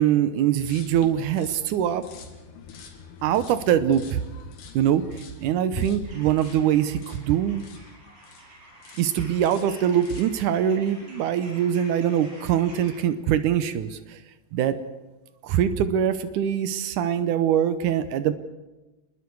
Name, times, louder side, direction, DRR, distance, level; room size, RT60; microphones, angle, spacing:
voice 1, 0.0-2.1 3.2-4.2 4.7-5.1 5.4-7.7 9.0-14.2 14.5-14.8 15.4-18.3, right 10 dB, 85° right, 11 dB, 1.8 m, -23 dB
sound 1, 0.6-8.5 8.8-9.1 9.4-10.4, left 5 dB, 85° left, 4.1 m, -44 dB
sound 2, 6.0-13.0, right 1 dB, 60° right, 8.8 m, -48 dB
28.0 x 21.0 x 4.7 m, 1.1 s
omnidirectional pair, 4.6 m